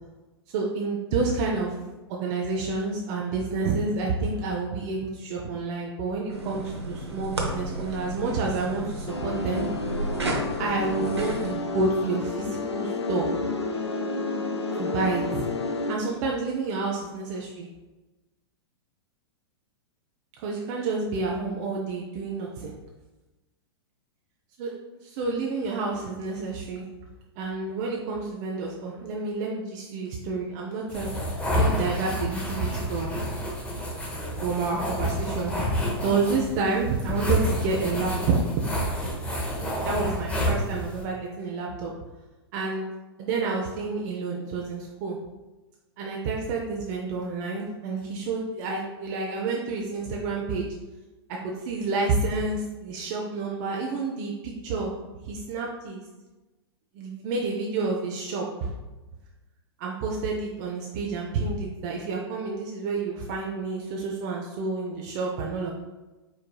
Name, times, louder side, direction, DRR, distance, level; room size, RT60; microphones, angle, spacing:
voice 1, 0.5-1.8 2.1-9.6 10.6-13.3 14.7-15.4 15.9-17.7 20.4-22.7 24.6-24.7 25.0-26.9 27.4-31.1 31.6-33.2 34.4-35.5 36.0-38.4 39.8-41.9 42.5-42.9 43.2-45.2 46.0-50.7 51.4-54.9 55.2-56.0 56.9-58.7 59.8-65.7, right 3 dB, 40° right, -1 dB, 0.6 m, -29 dB
sound 1, 6.3-11.5, right 1 dB, 80° right, 0.9 m, -33 dB
sound 2, 9.1-15.9, left 2 dB, 85° left, 0.5 m, -30 dB
sound 3, 30.9-41.0, equal, 10° left, 0.9 m, -29 dB
4.7 x 4.4 x 2.3 m, 1.1 s
figure-of-eight pair, 100°, 14 cm